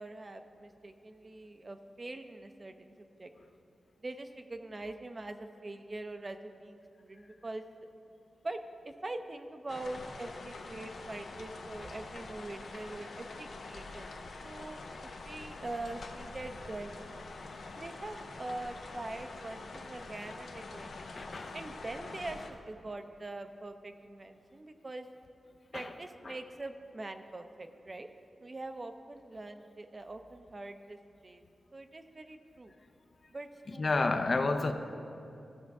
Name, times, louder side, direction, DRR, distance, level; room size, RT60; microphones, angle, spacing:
voice 1, 0.0-3.3 4.0-7.9 8.4-14.1 14.4-14.8 15.2-17.1 17.7-21.0 21.5-22.4 22.7-25.1 25.7-28.1 28.4-31.0 31.2-31.4 31.7-32.7 33.3-34.2, right 2 dB, 35° right, 0.5 m, -43 dB
sound 1, 9.7-22.5, left 3 dB, 85° left, 0.7 m, -45 dB
voice 2, 21.2-21.5 25.7-25.9 26.3-26.4 33.8-34.7, left 3 dB, 50° left, 0.6 m, -30 dB
15.0 x 6.4 x 3.5 m
wide cardioid pair, 85°, 0 cm